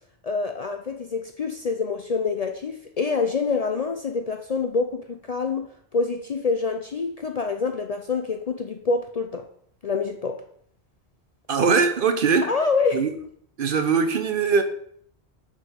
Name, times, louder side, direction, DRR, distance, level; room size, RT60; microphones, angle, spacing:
voice 1, 0.2-9.5 9.8-10.4 12.5-13.1, left 4 dB, 50° left, 0.5 m, -26 dB
voice 2, 11.5-12.5 12.9-13.1 13.6-14.6, right 5 dB, 55° right, 0.9 m, -21 dB
6.6 x 4.9 x 5.1 m
omnidirectional pair, 1.1 m